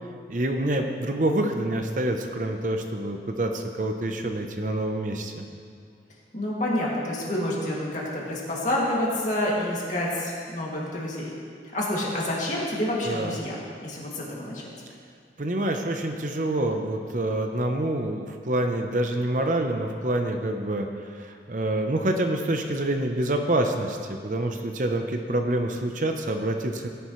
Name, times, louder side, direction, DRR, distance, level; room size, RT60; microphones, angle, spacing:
voice 1, 0.3-5.5 13.1-13.4 15.4-20.9 21.2-26.9, right 1 dB, 45° right, 4 dB, 0.7 m, -27 dB
voice 2, 6.3-11.3 11.7-14.6, left 1 dB, 45° left, -5 dB, 2.4 m, -28 dB
17.0 x 10.5 x 3.2 m, 2.2 s
head